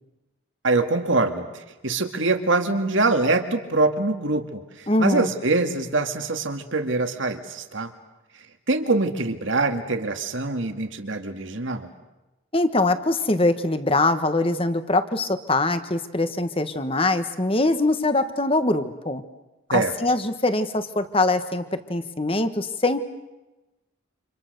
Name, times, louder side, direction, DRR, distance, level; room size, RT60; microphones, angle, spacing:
voice 1, 0.6-7.9 8.7-11.9 19.7-20.0, right 3 dB, 70° right, 7 dB, 2.1 m, -24 dB
voice 2, 4.9-5.3 12.5-19.2 19.7-23.0, left 2 dB, 25° left, 10 dB, 1.4 m, -23 dB
29.5 x 27.0 x 6.8 m, 1.1 s
head